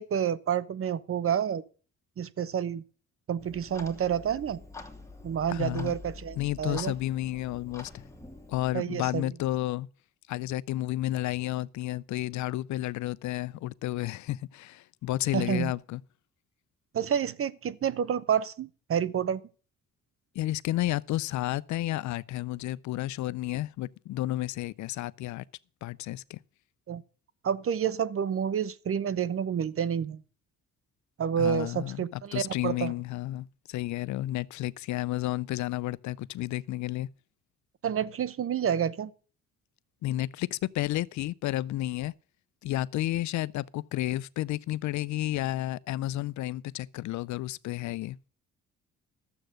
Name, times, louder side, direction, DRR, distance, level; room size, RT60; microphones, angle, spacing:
voice 1, 0.0-1.6 2.2-2.8 3.3-4.6 5.2-6.9 8.7-9.2 15.3-15.7 16.9-19.4 26.9-27.0 27.4-30.2 31.2-32.9 37.8-39.1, right 8 dB, 45° right, 0.8 m, -29 dB
Clock, 3.4-8.7, left 3 dB, 10° left, 2.0 m, -46 dB
voice 2, 5.5-5.9 6.4-8.1 8.5-9.9 10.3-16.0 20.3-25.4 25.8-26.4 31.4-37.1 40.0-42.1 42.6-48.2, left 15 dB, 70° left, 0.5 m, -31 dB
12.5 x 7.9 x 6.3 m
cardioid pair, 90°, 30 cm